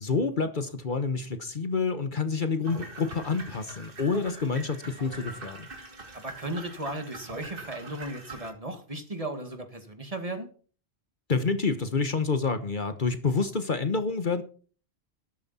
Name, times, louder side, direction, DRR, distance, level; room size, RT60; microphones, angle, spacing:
voice 1, 0.0-5.7 11.3-14.4, left 4 dB, 50° left, 1.2 m, -28 dB
sound 1, 2.6-8.5, right 3 dB, 55° right, 2.1 m, -44 dB
voice 2, 6.1-10.5, right 1 dB, 35° right, 2.1 m, -36 dB
13.0 x 12.0 x 4.3 m
omnidirectional pair, 1.1 m